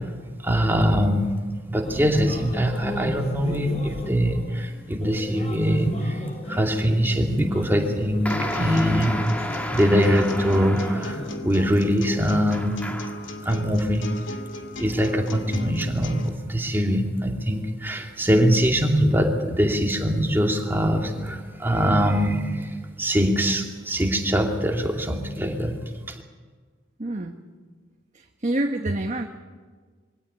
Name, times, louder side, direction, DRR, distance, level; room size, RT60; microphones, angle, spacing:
voice 1, 0.4-1.3 1.7-9.2 9.7-12.8 13.4-14.1 14.7-25.7 26.1-26.2, equal, 10° right, 2 dB, 2.6 m, -23 dB
sound 1, 1.8-11.4, equal, 35° left, 4.3 m, -33 dB
sound 2, 8.2-11.3 12.5-13.3, left 1 dB, 10° left, 1.6 m, -31 dB
sound 3, 8.3-16.3, left 2 dB, 70° left, 2.3 m, -37 dB
voice 2, 27.0-27.4 28.4-29.3, right 1 dB, 40° right, 4 dB, 1.2 m, -26 dB
23.0 x 17.0 x 9.6 m, 1.5 s
head